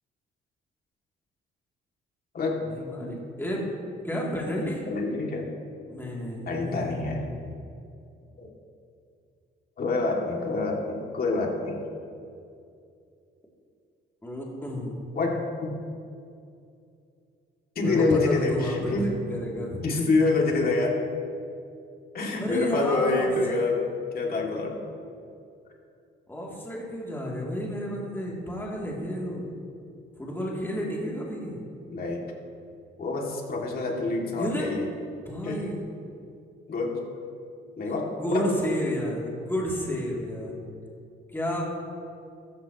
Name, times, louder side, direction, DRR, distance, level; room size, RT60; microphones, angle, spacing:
voice 1, 2.7-3.7 4.0-4.9 5.9-7.6 14.2-15.0 17.8-19.8 22.4-23.6 26.3-29.5 30.2-31.6 34.3-34.7 35.2-35.9 38.1-40.6 41.3-41.6, equal, 10° left, -4 dB, 2.9 m, -31 dB
voice 2, 4.9-5.5 6.5-7.3 8.4-8.5 9.8-11.8 15.1-15.7 17.8-19.2 19.8-21.0 22.1-23.8 24.1-24.8 31.9-32.2 33.0-34.9 35.4-35.7 36.7-37.0 37.8-38.5, left 3 dB, 50° left, -1 dB, 2.6 m, -26 dB
14.0 x 14.0 x 3.1 m, 2.5 s
cardioid pair, 90°, 20 cm